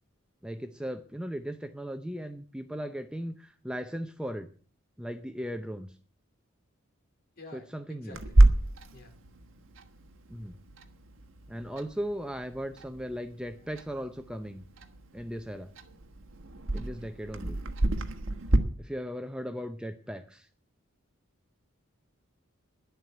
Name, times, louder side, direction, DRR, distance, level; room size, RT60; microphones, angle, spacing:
voice 1, 0.4-4.5 5.0-6.0 7.5-8.2 10.3-10.6 11.5-14.6 15.1-15.7 16.7-17.6 18.8-20.5, equal, 5° right, 8 dB, 0.6 m, -37 dB
voice 2, 7.4-8.3 8.9-9.1, left 2 dB, 45° left, 4 dB, 3.2 m, -49 dB
Clock, 8.1-18.6, right 1 dB, 70° right, 1.5 m, -29 dB
11.0 x 8.1 x 8.7 m, 0.43 s
head